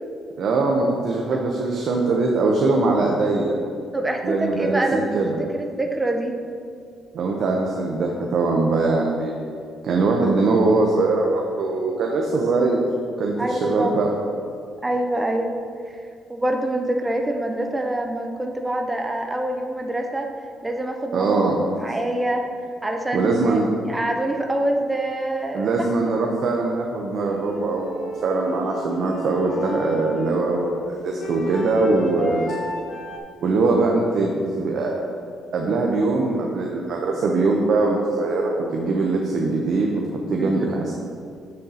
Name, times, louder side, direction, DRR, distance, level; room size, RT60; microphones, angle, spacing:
voice 1, 0.4-3.6 4.2-5.4 7.1-9.4 9.8-12.8 13.2-14.1 21.1-21.6 23.1-23.7 25.5-32.4 33.4-35.0 35.5-40.9, right 3 dB, 50° right, -1 dB, 0.7 m, -22 dB
voice 2, 3.9-5.1 5.5-6.4 13.4-13.9 14.8-15.5 15.9-16.0 16.3-20.3 20.6-21.5 21.7-22.4 22.8-23.6 23.9-25.7 40.4-40.7, right 1 dB, 10° right, 3 dB, 0.5 m, -25 dB
sound 1, 27.2-33.2, equal, 45° left, 1.0 m, -33 dB
7.1 x 6.5 x 4.0 m, 2.3 s
cardioid pair, 160°, 0 cm